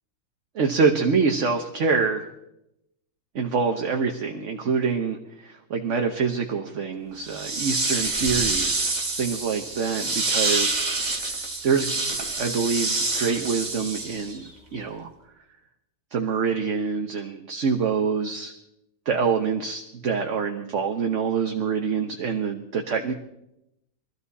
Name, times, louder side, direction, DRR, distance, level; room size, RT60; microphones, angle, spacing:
voice 1, 0.5-2.3 3.3-8.9 9.2-10.9 11.2-11.3 11.6-11.9 12.2-15.1 16.1-18.5 19.0-23.1, right 5 dB, 45° right, 4 dB, 1.2 m, -26 dB
sound 1, 7.2-14.5, right 3 dB, 25° right, 1.7 m, -27 dB
23.0 x 14.0 x 4.2 m, 0.84 s
omnidirectional pair, 2.1 m